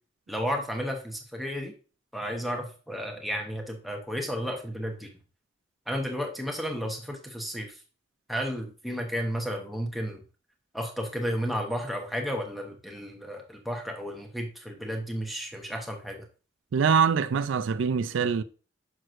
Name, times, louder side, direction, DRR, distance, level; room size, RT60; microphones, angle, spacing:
voice 1, 0.3-1.7 2.1-5.1 5.9-7.7 8.3-10.2 10.7-16.2, equal, ahead, 1.0 m, -32 dB
voice 2, 16.7-18.4, right 6 dB, 90° right, 0.4 m, -24 dB
6.3 x 6.1 x 2.6 m
head